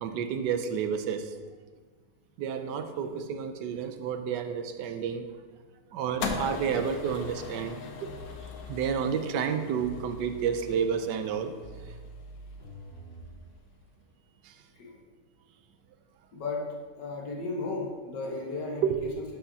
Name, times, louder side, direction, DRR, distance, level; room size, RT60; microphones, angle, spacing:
voice 1, 0.0-1.3 2.4-5.3 5.9-7.8 8.7-11.5 14.4-14.5 18.8-19.2, right 7 dB, 80° right, 8 dB, 1.3 m, -30 dB
voice 2, 2.8-3.2 14.8-14.9 16.3-16.6 17.0-18.8, left 3 dB, 85° left, -1 dB, 2.0 m, -35 dB
sound 1, 6.2-12.5, left 4 dB, 65° left, 1.2 m, -40 dB
sound 2, 6.3-13.5, left 2 dB, 50° right, 2.4 m, -46 dB
11.5 x 6.3 x 2.8 m, 1.4 s
omnidirectional pair, 1.8 m